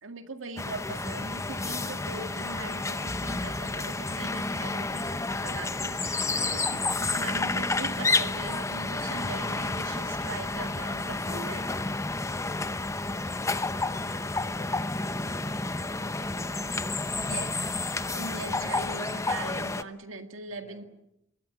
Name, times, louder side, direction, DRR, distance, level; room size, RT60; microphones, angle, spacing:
voice 1, 0.0-11.7 17.2-17.5 18.1-20.8, right 3 dB, 80° right, 6 dB, 2.1 m, -40 dB
sound 1, 0.6-19.8, left 3 dB, 15° left, 0.9 m, -30 dB
voice 2, 20.6-20.9, left 1 dB, 40° left, 8 dB, 5.4 m, -55 dB
27.0 x 22.5 x 7.7 m, 0.84 s
head